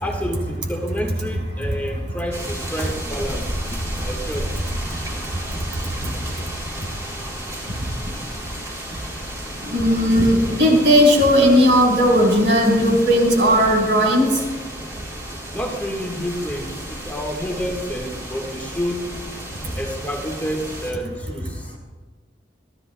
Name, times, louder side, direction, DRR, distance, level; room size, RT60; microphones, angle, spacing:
voice 1, 0.0-4.6 15.5-19.1 19.7-21.8, equal, 10° left, 0 dB, 1.4 m, -29 dB
sound 1, 2.3-20.9, right 1 dB, 15° right, 2.9 m, -33 dB
voice 2, 9.6-14.3, equal, 75° right, -1 dB, 3.8 m, -16 dB
27.0 x 13.0 x 2.2 m, 1.4 s
head